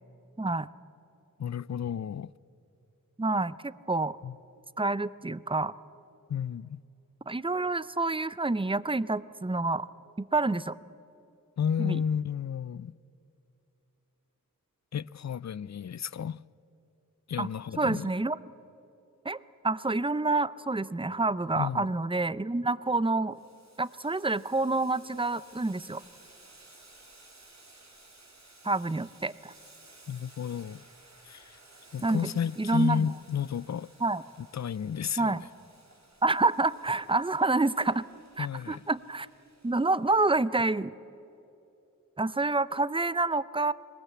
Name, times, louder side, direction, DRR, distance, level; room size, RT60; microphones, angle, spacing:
voice 1, 0.4-0.7 3.2-4.2 4.8-5.7 7.3-9.9 10.2-10.7 11.8-12.0 17.4-17.5 17.8-18.4 19.2-23.4 23.8-26.0 28.6-29.5 32.0-32.3 32.6-33.1 34.0-34.2 35.2-35.4 36.2-38.1 38.4-39.3 39.6-40.9 42.2-43.7, right 2 dB, 15° right, 0.6 m, -28 dB
voice 2, 1.4-2.3 4.2-4.4 6.3-6.8 11.6-12.9 14.9-16.4 17.3-18.1 21.6-21.9 30.1-30.8 31.2-31.6 31.9-33.9 34.5-35.4 38.4-38.8, left 8 dB, 55° left, 0.4 m, -32 dB
Boiling, 23.3-40.1, right 2 dB, 55° right, 3.3 m, -57 dB
21.5 x 19.0 x 8.5 m
wide cardioid pair, 45°, 33 cm